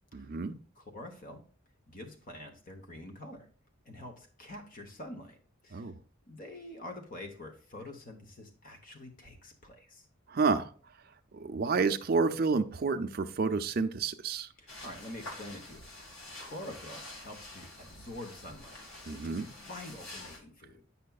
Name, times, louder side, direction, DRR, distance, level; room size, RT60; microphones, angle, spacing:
voice 1, 0.1-0.6 5.7-5.9 10.3-10.7 11.3-14.5 19.1-19.5, right 4 dB, 45° right, 8 dB, 0.4 m, -29 dB
voice 2, 0.8-1.4 1.9-3.5 3.8-5.4 5.6-5.9 6.3-10.1 14.6-16.1 16.4-18.8 19.1-20.8, left 1 dB, 40° left, 3 dB, 0.9 m, -46 dB
sound 1, 14.7-20.4, left 1 dB, 80° left, 1.9 m, -47 dB
8.3 x 5.7 x 2.3 m, 0.43 s
head